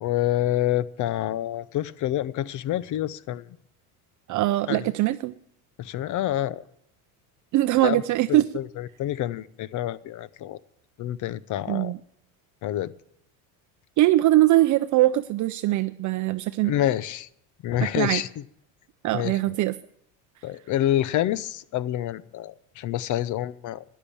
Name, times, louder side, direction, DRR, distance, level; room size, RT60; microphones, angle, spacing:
voice 1, 0.0-3.4 4.7-4.9 5.8-6.6 7.8-8.0 8.3-10.6 11.0-11.9 12.6-12.9 16.6-17.3 17.6-18.4 19.1-19.3 20.4-23.8, left 13 dB, 45° left, 20 dB, 0.7 m, -27 dB
voice 2, 4.3-5.3 7.5-8.5 11.7-12.0 14.0-16.7 18.0-18.2 19.0-19.7, right 16 dB, 45° right, 11 dB, 0.6 m, -22 dB
13.5 x 10.5 x 7.1 m, 0.73 s
cardioid pair, 130°, 41 cm